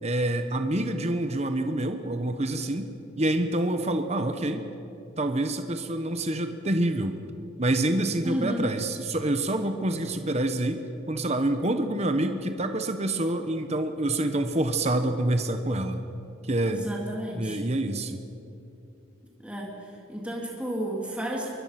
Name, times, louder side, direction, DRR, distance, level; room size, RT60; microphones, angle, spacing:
voice 1, 0.0-2.9 3.2-4.7 5.2-7.2 7.6-16.0 16.4-16.9 17.3-18.2, right 1 dB, 30° right, 7 dB, 1.1 m, -27 dB
voice 2, 8.2-8.7 16.6-17.6 19.4-19.7 20.1-21.5, equal, 5° right, -2 dB, 2.9 m, -32 dB
23.0 x 21.5 x 6.0 m, 2.7 s
head